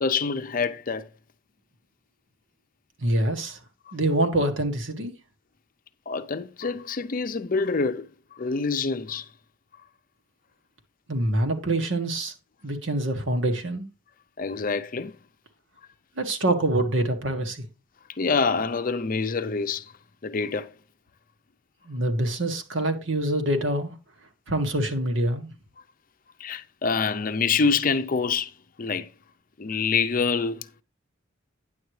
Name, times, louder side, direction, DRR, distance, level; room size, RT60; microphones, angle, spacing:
voice 1, 0.0-1.1 3.9-4.0 6.1-9.3 14.4-15.2 18.2-19.9 20.2-20.7 26.4-28.5 28.8-29.1 29.6-30.7, left 5 dB, 45° left, 0.6 m, -26 dB
voice 2, 3.0-3.6 3.9-5.1 11.1-12.3 12.6-13.8 16.2-17.6 21.9-24.0 24.5-25.5, right 1 dB, 75° right, 1.6 m, -25 dB
9.6 x 8.0 x 3.2 m
head